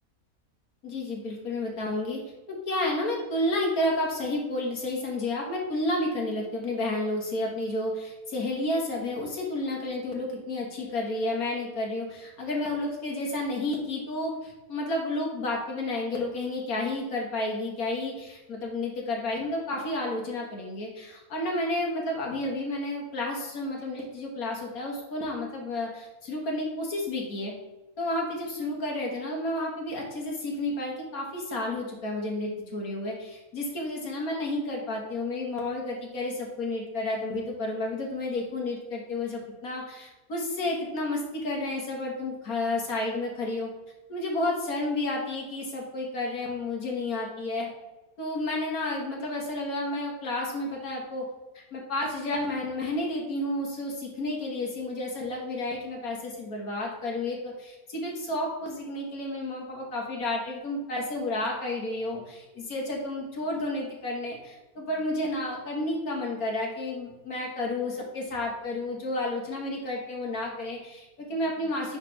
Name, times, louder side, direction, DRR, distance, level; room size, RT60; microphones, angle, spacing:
voice 1, 0.8-2.2 2.5-27.5 28.0-43.7 44.1-47.7 48.2-51.3 51.7-72.0, left 2 dB, 80° left, -1 dB, 2.0 m, -31 dB
9.9 x 4.2 x 3.3 m, 1.1 s
omnidirectional pair, 1.5 m